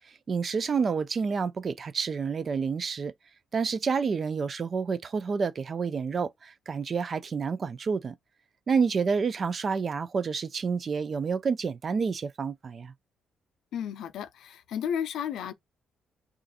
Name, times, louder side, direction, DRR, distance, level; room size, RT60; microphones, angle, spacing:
voice 1, 0.3-3.1 3.5-8.2 8.7-12.9, right 5 dB, 45° right, 0.4 m, -29 dB
voice 2, 13.7-15.5, left 8 dB, 75° left, 0.4 m, -33 dB
2.4 x 2.4 x 4.0 m
cardioid pair, 90°, 0 cm